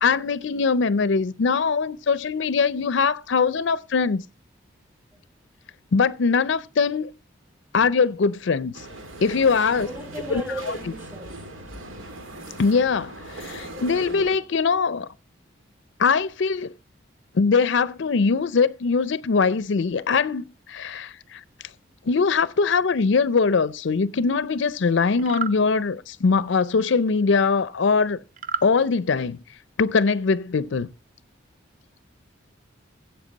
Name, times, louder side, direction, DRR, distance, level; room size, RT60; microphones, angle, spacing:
voice 1, 0.0-4.2 5.9-7.1 7.7-8.8 9.2-9.9 10.3-10.8 12.6-15.1 16.0-16.7 17.3-21.4 22.1-28.2 28.6-29.4 29.8-30.9, left 5 dB, 65° left, 0.5 m, -22 dB
sound 1, 8.7-14.4, right 1 dB, 85° right, 2.3 m, -39 dB
voice 2, 9.6-11.3, right 1 dB, 10° right, 4.9 m, -35 dB
sound 2, 25.2-25.6 28.4-28.7, right 5 dB, 40° right, 0.6 m, -29 dB
16.0 x 7.9 x 4.0 m
head